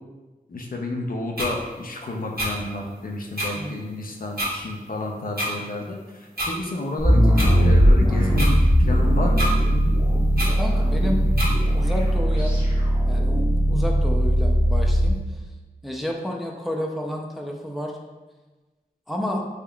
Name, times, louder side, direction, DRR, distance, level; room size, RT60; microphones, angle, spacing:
voice 1, 0.5-9.5, left 2 dB, 70° left, 1 dB, 0.5 m, -31 dB
sound 1, 1.4-1.5 2.4-2.5 3.4-3.5 4.4-4.5 5.4-5.5 6.4-6.5 7.4-7.5 8.4-8.5 9.4-9.5 10.4-10.5 11.4-11.5, equal, 80° right, 1.3 m, -26 dB
sound 2, 7.0-15.1, equal, 30° right, 1.2 m, -19 dB
voice 2, 10.6-11.2 11.7-12.5 13.1-13.4 13.7-15.2 15.8-17.9 19.1-19.4, left 1 dB, ahead, 0 dB, 0.4 m, -30 dB
3.6 x 3.5 x 2.3 m, 1.2 s
wide cardioid pair, 65°, 15 cm